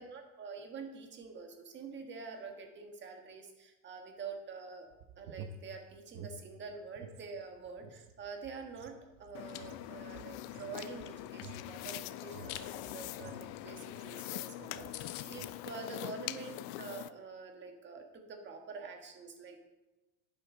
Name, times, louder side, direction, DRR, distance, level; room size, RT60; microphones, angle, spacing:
voice 1, 0.0-4.9 5.2-19.7, right 4 dB, 25° right, 3 dB, 1.6 m, -46 dB
sound 1, 4.9-7.3 7.6-14.3 14.6-15.0 15.3-15.6, right 5 dB, 50° right, 1.1 m, -52 dB
Chewing mastication, 9.2-9.6 10.1-11.6 12.2-12.7 13.0-13.2 13.6-13.7 13.9-14.0 14.4-14.5 14.6-14.7 14.9-15.3, left 15 dB, 75° left, 0.9 m, -46 dB
sound 2, 9.3-17.1, left 16 dB, 45° left, 0.5 m, -43 dB
11.5 x 8.9 x 3.9 m, 1.1 s
supercardioid pair, 140°, 45 cm